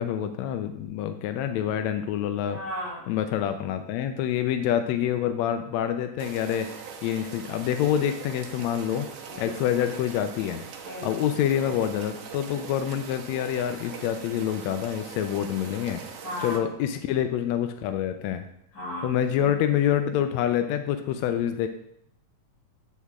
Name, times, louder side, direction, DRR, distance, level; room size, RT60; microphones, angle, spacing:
voice 1, 0.0-2.6 3.1-6.7 7.0-9.1 9.4-10.6 11.0-16.0 16.4-18.5 19.0-21.7, left 10 dB, 90° left, 8 dB, 1.5 m, -26 dB
voice 2, 2.5-3.1 9.3-9.5 10.8-11.2 16.2-16.7 18.7-19.5, equal, 30° left, -6 dB, 3.0 m, -35 dB
sound 1, 6.2-16.6, right 6 dB, 80° right, 2.5 m, -42 dB
8.0 x 6.5 x 3.6 m, 0.72 s
omnidirectional pair, 3.7 m